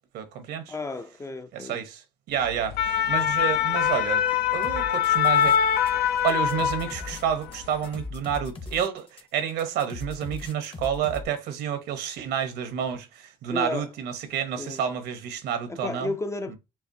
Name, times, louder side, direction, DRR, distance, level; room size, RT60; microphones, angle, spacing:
voice 1, 0.1-0.8 1.5-4.2 4.5-5.6 6.2-16.1 16.5-16.6, right 8 dB, 75° right, 0.9 m, -29 dB
voice 2, 0.7-1.8 13.5-13.9 14.6-14.8 15.7-16.6, left 2 dB, 15° left, 0.4 m, -32 dB
sound 1, 2.5-7.3 7.6-7.9, left 9 dB, 75° left, 0.6 m, -23 dB
sound 2, 4.6-5.9 6.2-11.2, left 4 dB, 30° left, 0.8 m, -39 dB
5.7 x 2.0 x 2.6 m
cardioid pair, 110°, 17 cm